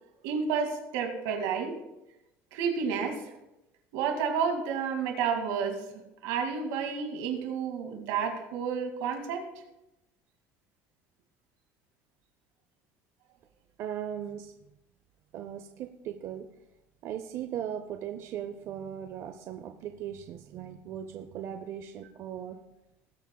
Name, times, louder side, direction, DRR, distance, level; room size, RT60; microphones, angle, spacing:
voice 1, 0.2-1.8 2.5-3.3 3.9-9.5, right 6 dB, 80° right, 3 dB, 2.2 m, -31 dB
voice 2, 13.8-14.5 15.3-16.5 17.0-22.6, right 9 dB, 45° right, 6 dB, 0.6 m, -38 dB
20.0 x 8.3 x 2.3 m, 0.92 s
cardioid pair, 165°, 6 cm